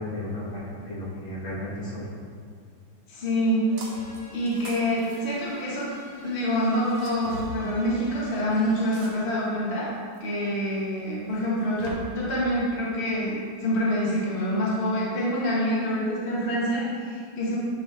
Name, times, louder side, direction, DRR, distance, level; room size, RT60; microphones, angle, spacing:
voice 1, 0.0-2.0, left 1 dB, 80° left, -9 dB, 2.5 m, -34 dB
voice 2, 3.1-3.7 4.3-5.9 6.2-9.9 10.2-13.3 13.6-17.6, equal, 35° left, -7 dB, 1.4 m, -26 dB
sound 1, 3.7-9.2, left 1 dB, 60° left, 1.9 m, -49 dB
sound 2, 3.8-4.2 4.5-6.0 6.9-7.5 8.9-9.5 10.1-10.2 11.4-11.9, right 2 dB, 70° right, 1.6 m, -41 dB
9.8 x 3.3 x 3.5 m, 2.2 s
omnidirectional pair, 2.2 m